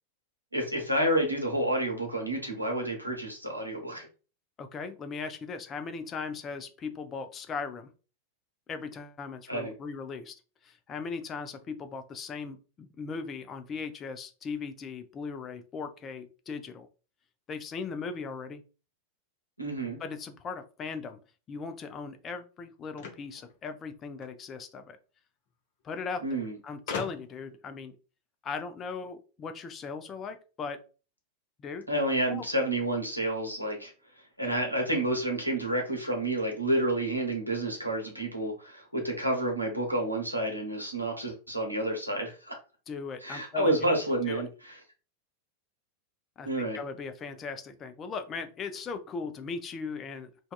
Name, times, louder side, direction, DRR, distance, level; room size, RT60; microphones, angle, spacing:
voice 1, 0.5-4.1 9.5-9.7 19.6-20.0 26.2-26.5 31.9-33.9 34.4-42.6 43.2-44.7 46.4-46.8, right 1 dB, 90° right, 1 dB, 0.8 m, -29 dB
voice 2, 4.6-7.9 8.7-10.3 10.6-16.9 17.5-18.6 20.0-21.2 21.5-25.0 25.8-28.0 28.4-30.8 31.6-31.8 32.3-32.4 42.9-43.8 44.3-44.4 46.4-46.5 46.7-50.5, left 5 dB, 25° left, 9 dB, 0.4 m, -38 dB
sound 1, 22.9-24.4 25.5-25.6 25.8-25.9 26.9-27.5, left 5 dB, 50° left, 0.8 m, -39 dB
2.6 x 2.3 x 2.2 m, 0.35 s
figure-of-eight pair, 90°, 0 cm